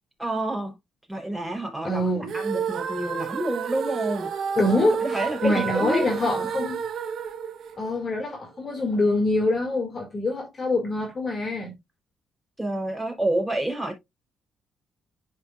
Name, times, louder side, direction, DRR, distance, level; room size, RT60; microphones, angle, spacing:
voice 1, 0.2-0.7 1.1-4.3 5.0-6.5 12.6-14.0, right 1 dB, 5° right, 3.7 m, -28 dB
voice 2, 1.8-2.3 4.6-6.8 7.8-11.7, left 2 dB, 35° left, 1.9 m, -25 dB
sound 1, 2.2-8.4, right 7 dB, 65° right, 0.8 m, -31 dB
11.0 x 4.6 x 2.3 m
cardioid pair, 90°, 0 cm